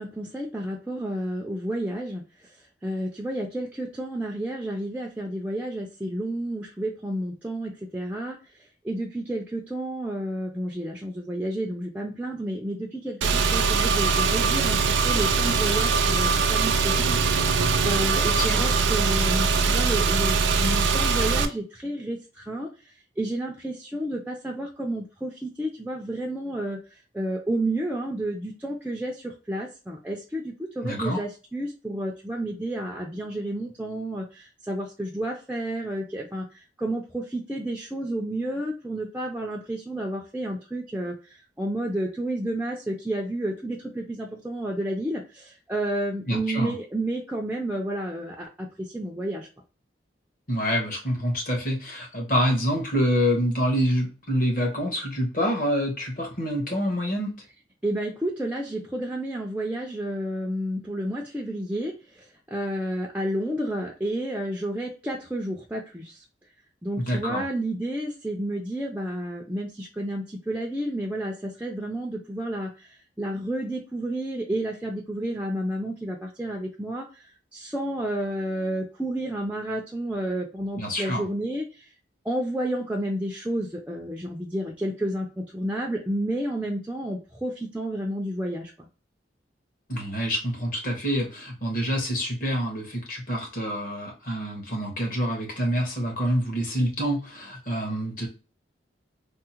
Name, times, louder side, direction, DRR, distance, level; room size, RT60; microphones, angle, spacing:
voice 1, 0.0-2.2 2.8-8.4 8.8-20.3 20.6-22.7 23.2-26.8 27.1-49.5 57.8-66.2 66.8-77.3 77.5-81.9 82.2-88.9, right 1 dB, 10° right, 0 dB, 0.4 m, -31 dB
Car / Engine, 13.2-21.5, right 4 dB, 85° right, 0.4 m, -22 dB
voice 2, 18.3-18.6 30.8-31.2 46.3-46.7 50.5-57.3 67.0-67.4 80.8-81.2 89.9-98.3, equal, 50° left, 0 dB, 1.2 m, -26 dB
3.6 x 2.0 x 2.8 m, 0.34 s
head